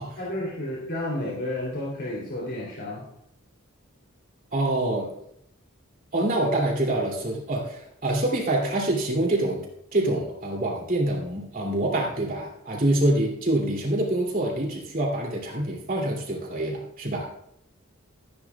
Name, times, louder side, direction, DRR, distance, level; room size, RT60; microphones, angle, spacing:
voice 1, 0.2-3.0, left 1 dB, 60° left, -5 dB, 3.1 m, -31 dB
voice 2, 4.5-5.1 6.1-9.6 9.9-17.3, right 1 dB, 45° right, -1 dB, 2.7 m, -26 dB
14.0 x 11.0 x 2.4 m, 0.73 s
head